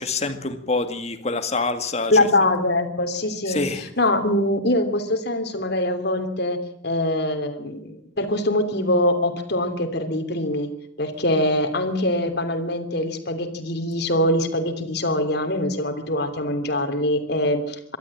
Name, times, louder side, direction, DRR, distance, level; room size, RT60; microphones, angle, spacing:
voice 1, 0.0-2.1 3.5-3.9, left 3 dB, 35° left, 8 dB, 2.1 m, -26 dB
voice 2, 2.1-3.6 4.0-6.6 6.8-10.7 11.0-18.0, left 1 dB, 60° left, 7 dB, 3.2 m, -23 dB
23.5 x 13.0 x 8.8 m, 0.69 s
head